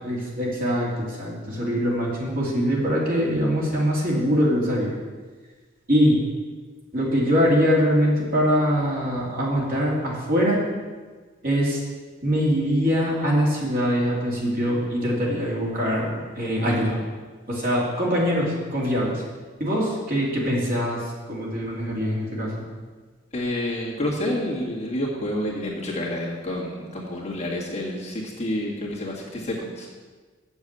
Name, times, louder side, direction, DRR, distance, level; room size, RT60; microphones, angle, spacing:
voice 1, 0.0-4.9 5.9-6.2 6.9-10.6 11.4-11.8 12.2-17.0 17.5-19.2 19.6-22.6, equal, 45° right, -4 dB, 2.5 m, -23 dB
voice 2, 23.3-29.9, left 1 dB, 35° left, -5 dB, 2.0 m, -29 dB
7.2 x 7.0 x 8.1 m, 1.4 s
head